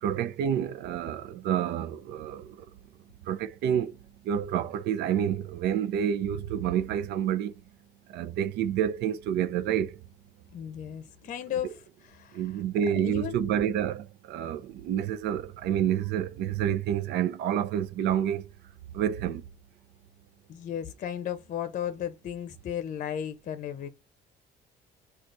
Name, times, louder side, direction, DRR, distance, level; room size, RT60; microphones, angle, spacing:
voice 1, 0.0-2.7 3.2-4.0 4.2-7.6 8.1-10.0 12.3-18.5 18.9-19.4, right 9 dB, 75° right, 0.6 m, -28 dB
voice 2, 10.5-12.6 13.0-13.6 20.5-23.9, left 10 dB, 50° left, 0.6 m, -35 dB
3.9 x 2.4 x 4.6 m
cardioid pair, 110°, 17 cm